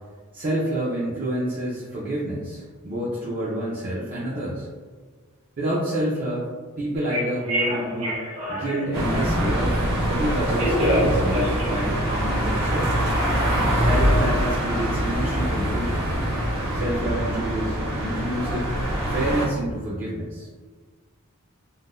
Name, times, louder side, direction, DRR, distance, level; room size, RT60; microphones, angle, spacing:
voice 1, 0.3-4.7 5.6-6.5 6.8-8.2 8.5-13.0 13.8-16.1 16.7-18.7 19.1-20.5, right 1 dB, 40° right, -7 dB, 0.5 m, -28 dB
Telephone, 7.0-9.5 10.2-12.6, equal, 80° right, 1.1 m, -27 dB
sound 1, 8.9-19.5, equal, 60° right, 0.9 m, -24 dB
3.7 x 2.1 x 2.4 m, 1.5 s
head